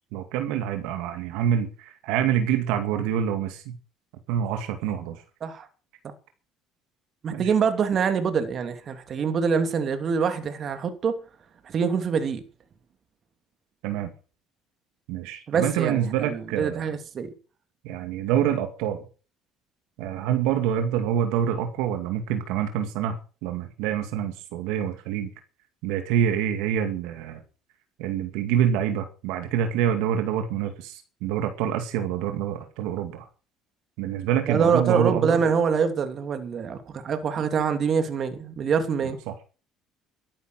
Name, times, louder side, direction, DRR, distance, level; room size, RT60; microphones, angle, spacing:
voice 1, 0.1-3.8 4.3-5.2 7.3-7.5 13.8-14.1 15.1-16.9 17.8-19.0 20.0-25.3 25.8-27.4 28.0-33.2 34.0-35.4 39.3-39.4, right 9 dB, 85° right, 2.3 m, -26 dB
voice 2, 7.2-11.2 11.6-12.4 15.5-17.3 34.5-39.2, right 6 dB, 45° right, 2.8 m, -25 dB
13.0 x 11.0 x 6.4 m
cardioid pair, 105°, 0 cm